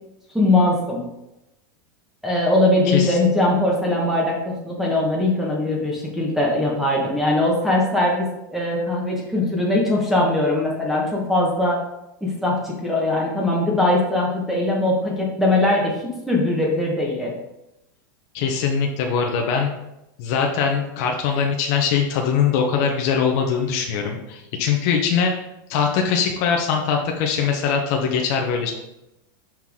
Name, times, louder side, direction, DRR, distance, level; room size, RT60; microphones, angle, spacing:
voice 1, 0.3-1.0 2.2-11.8 12.2-17.3, left 2 dB, ahead, -3 dB, 1.3 m, -21 dB
voice 2, 2.9-3.2 18.3-19.7 20.2-25.3 25.7-28.7, left 6 dB, 55° left, 2 dB, 0.8 m, -22 dB
5.8 x 4.5 x 3.7 m, 0.89 s
supercardioid pair, 135°, 11 cm